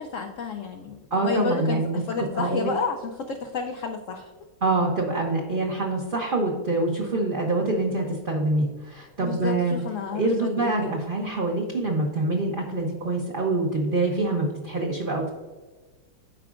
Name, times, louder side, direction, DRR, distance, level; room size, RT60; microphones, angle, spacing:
voice 1, 0.0-1.0 1.2-4.3 9.2-10.9, left 5 dB, 75° left, 3 dB, 0.7 m, -30 dB
voice 2, 1.1-2.0 2.3-2.7 4.6-9.8 10.1-15.3, right 2 dB, 45° right, -1 dB, 0.7 m, -25 dB
12.0 x 4.8 x 2.4 m, 1.3 s
omnidirectional pair, 1.9 m